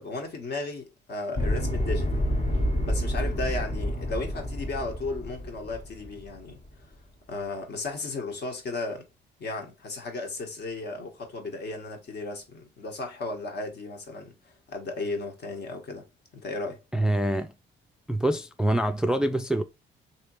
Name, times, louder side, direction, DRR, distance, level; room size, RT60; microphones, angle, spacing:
voice 1, 0.0-2.3 2.8-6.6 7.3-9.0 9.4-16.1 16.3-16.8, left 2 dB, 55° left, 1.2 m, -35 dB
sound 1, 1.4-6.6, equal, 35° left, 1.0 m, -28 dB
voice 2, 16.9-17.5 18.1-19.6, right 1 dB, 5° right, 0.3 m, -25 dB
3.3 x 2.9 x 3.0 m
cardioid pair, 90°, 20 cm